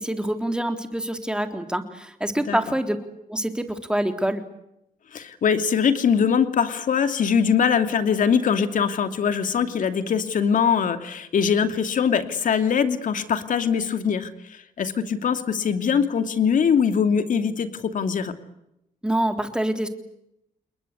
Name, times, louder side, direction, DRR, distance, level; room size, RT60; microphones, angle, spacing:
voice 1, 0.0-3.0 3.3-4.4 19.0-19.9, right 1 dB, 5° right, 7 dB, 3.5 m, -26 dB
voice 2, 5.1-18.3, left 7 dB, 65° left, 10 dB, 2.8 m, -22 dB
29.0 x 22.0 x 8.2 m, 0.82 s
cardioid pair, 110°, 15 cm